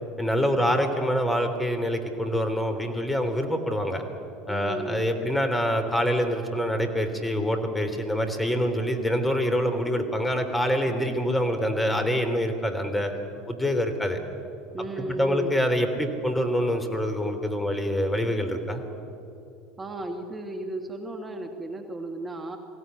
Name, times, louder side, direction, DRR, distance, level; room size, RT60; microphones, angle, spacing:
voice 1, 0.2-4.0 4.5-13.1 13.5-14.2 15.2-18.8, equal, 10° left, 6 dB, 3.5 m, -25 dB
voice 2, 4.5-5.0 14.7-15.6 19.8-22.6, right 2 dB, 20° right, 4 dB, 2.0 m, -34 dB
22.0 x 17.0 x 9.7 m, 2.6 s
hypercardioid pair, 75°, 0 cm